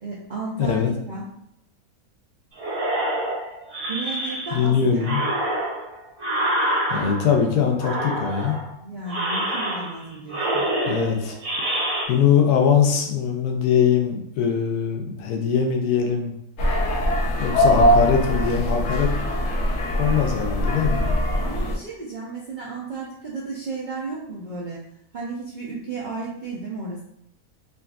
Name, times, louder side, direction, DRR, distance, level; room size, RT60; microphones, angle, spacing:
voice 1, 0.0-1.2 3.8-5.1 8.8-10.6 21.4-24.8 25.1-27.0, right 3 dB, 65° right, -7 dB, 0.4 m, -33 dB
voice 2, 0.6-0.9 4.5-5.2 6.9-8.6 10.9-11.4 12.1-16.4 17.4-19.1 20.0-21.0, left 7 dB, 80° left, 3 dB, 1.1 m, -21 dB
sound 1, 2.6-4.7 5.0-7.4 7.8-8.7 9.1-10.0 10.3-12.1, right 1 dB, 45° right, 1.0 m, -26 dB
sound 2, 16.6-21.7, equal, 65° left, 0.8 m, -21 dB
3.6 x 2.5 x 2.3 m, 0.74 s
omnidirectional pair, 1.6 m